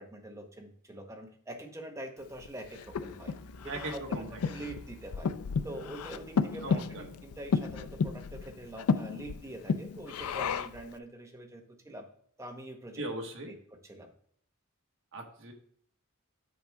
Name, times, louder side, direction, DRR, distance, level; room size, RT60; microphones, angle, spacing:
voice 1, 0.0-3.3 3.6-5.3 5.6-12.1 12.4-13.0 13.5-14.1, right 1 dB, 15° right, 3 dB, 1.0 m, -44 dB
Breathing, 2.4-10.9, left 5 dB, 80° left, 0.4 m, -33 dB
sound 1, 2.8-7.9, left 1 dB, 55° left, 0.8 m, -54 dB
voice 2, 3.7-4.2 6.6-7.1 13.0-13.5 15.1-15.5, right 2 dB, 65° right, 3 dB, 1.3 m, -39 dB
8.6 x 4.7 x 3.5 m, 0.63 s
head